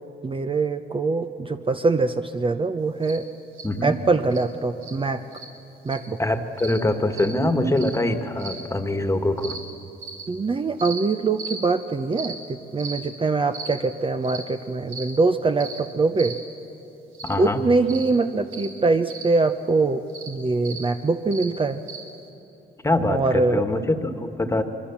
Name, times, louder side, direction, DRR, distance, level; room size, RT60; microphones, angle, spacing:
voice 1, 0.2-3.3 3.8-5.2 5.8-6.2 10.3-16.4 17.4-21.8 23.1-23.6, right 3 dB, 25° right, 8 dB, 0.8 m, -23 dB
sound 1, 3.0-3.2 3.5-3.7 4.3-4.4 4.8-4.9 5.3-5.4 5.9-6.1 6.6-6.8 7.1-7.3 7.8-8.0 8.4-8.6 9.4-9.6 10.0-10.2 10.8-11.0 11.4-11.6 12.1-12.3 12.8-13.0 13.5-13.7 14.2-14.4 14.9-15.1 15.6-15.8 16.2-16.4 17.1-17.3 17.9-18.1 18.5-18.7 19.1-19.2 20.1-20.3 20.6-20.8 21.3-21.4 21.9-22.0, right 4 dB, 85° right, 3.8 m, -36 dB
voice 2, 6.2-9.6 17.2-17.6 22.8-24.6, left 1 dB, 15° left, 7 dB, 1.7 m, -23 dB
26.0 x 23.0 x 7.3 m, 2.9 s
cardioid pair, 90°, 20 cm